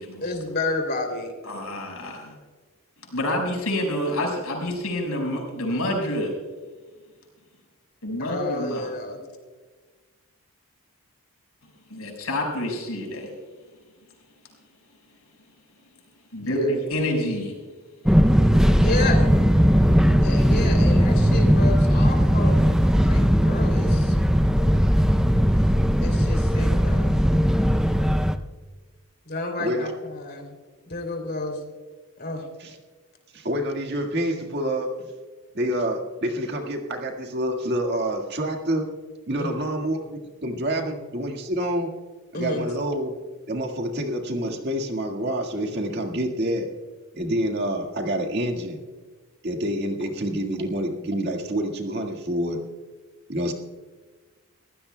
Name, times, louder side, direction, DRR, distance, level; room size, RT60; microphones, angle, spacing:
voice 1, 0.2-1.3 8.2-9.2 16.4-16.7 18.7-19.3 20.2-24.2 26.0-27.2 29.2-30.5 30.9-31.6 32.2-32.5 39.4-39.7 40.7-40.9 42.3-42.7, left 2 dB, 45° left, 3 dB, 3.0 m, -31 dB
voice 2, 1.4-2.4 3.1-6.3 8.0-8.8 11.9-13.3 16.3-17.6, left 1 dB, 75° left, 1 dB, 5.2 m, -27 dB
Fixed-wing aircraft airplane, 18.1-28.4, equal, 5° right, 0.5 m, -18 dB
voice 3, 29.6-29.9 32.6-32.7 33.3-35.1 35.5-38.9 39.3-41.9 42.3-43.2 43.5-46.7 47.1-48.8 49.4-52.7 53.3-53.5, right 1 dB, 50° right, 2 dB, 1.8 m, -27 dB
24.5 x 16.0 x 2.2 m, 1.4 s
head